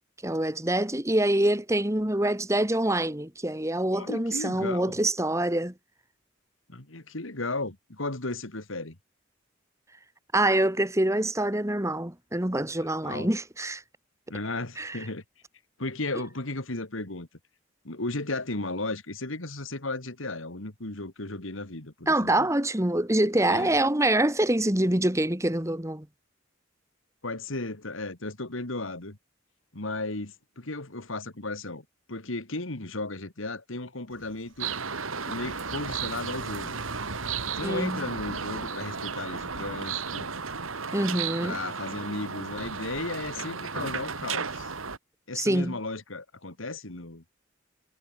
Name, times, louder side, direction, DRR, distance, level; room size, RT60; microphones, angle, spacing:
voice 1, 0.2-5.7 10.3-13.8 14.8-15.0 22.1-26.1 37.6-38.0 40.9-41.6 45.4-45.8, right 1 dB, 15° right, 1.9 m, -25 dB
voice 2, 3.9-5.0 6.7-9.0 12.8-13.3 14.3-15.2 15.8-17.3 17.8-22.5 23.5-23.7 27.2-29.2 29.7-34.7 35.3-36.8 37.5-40.3 41.4-44.7 45.3-47.2, left 2 dB, 75° left, 2.6 m, -35 dB
Car / Accelerating revving vroom, 34.1-40.8, right 2 dB, 70° right, 7.9 m, -48 dB
sound 1, 34.6-45.0, right 5 dB, 90° right, 2.7 m, -34 dB
head